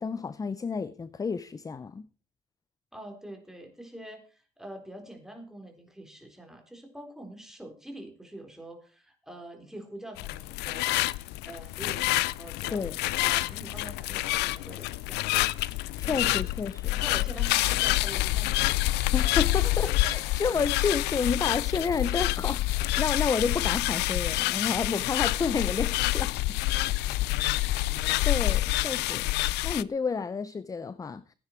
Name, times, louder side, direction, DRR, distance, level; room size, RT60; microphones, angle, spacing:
voice 1, 0.0-2.1 12.7-13.0 16.0-17.0 19.1-26.6 28.2-29.3 29.6-31.2, left 5 dB, 20° left, 0.6 m, -30 dB
voice 2, 2.9-12.9 13.2-15.5 16.2-16.5 16.9-19.0 19.6-19.7 20.1-20.3, right 1 dB, 5° right, 3.8 m, -45 dB
sound 1, 10.2-29.8, left 17 dB, 85° left, 0.5 m, -27 dB
15.0 x 9.7 x 4.5 m
cardioid pair, 110°, 17 cm